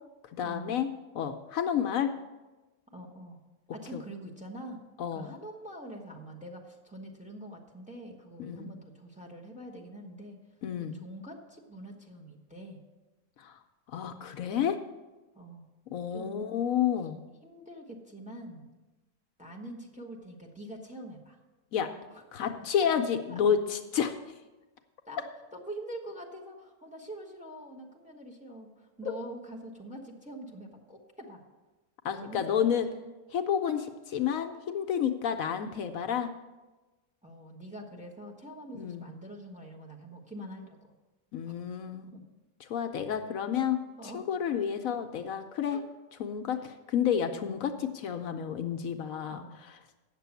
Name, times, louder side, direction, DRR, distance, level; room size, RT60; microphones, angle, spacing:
voice 1, 0.3-0.9 1.1-2.1 3.9-4.0 5.0-5.3 8.5-8.7 10.6-10.9 13.4-13.6 13.9-14.8 15.9-17.2 21.7-21.9 22.3-24.2 29.0-29.1 32.0-32.9 33.3-36.3 38.7-39.0 41.3-42.1 42.6-45.8 46.2-49.8, left 8 dB, 70° left, 6 dB, 1.0 m, -30 dB
voice 2, 2.9-3.4 3.7-4.8 5.1-10.4 11.0-12.8 15.3-15.6 16.1-16.5 17.4-18.7 19.4-21.4 22.1-22.2 25.1-25.2 25.5-31.4 32.2-32.4 37.2-40.9 42.1-42.2 44.0-44.2 45.7-45.8 46.6-46.7 49.3-49.6, right 1 dB, 5° right, 1 dB, 1.2 m, -44 dB
8.9 x 6.8 x 8.2 m, 1.2 s
omnidirectional pair, 1.5 m